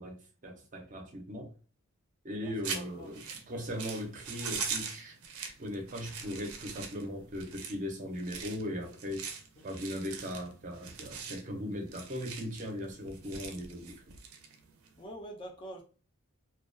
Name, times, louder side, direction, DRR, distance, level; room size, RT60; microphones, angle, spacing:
voice 1, 0.0-1.5 2.2-3.2 3.5-5.1 5.4-9.3 9.6-14.0, left 1 dB, 35° right, 0.5 m, -39 dB
voice 2, 2.4-3.2 15.0-15.8, right 1 dB, 25° left, 0.3 m, -45 dB
sound 1, 2.6-15.0, right 6 dB, 85° right, 0.5 m, -42 dB
2.2 x 2.2 x 2.5 m
head